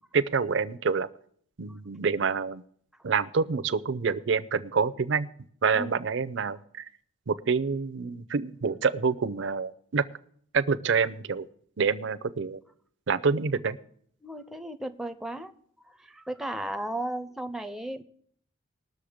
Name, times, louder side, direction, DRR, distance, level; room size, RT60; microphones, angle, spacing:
voice 1, 0.1-1.1 1.6-2.6 3.0-5.3 5.6-6.9 7.3-10.0 10.5-11.5 11.8-12.6 13.1-13.8, right 5 dB, 60° right, 14 dB, 0.5 m, -27 dB
voice 2, 14.2-15.5 15.9-18.0, right 1 dB, ahead, 9 dB, 0.5 m, -35 dB
19.5 x 6.6 x 5.0 m, 0.62 s
head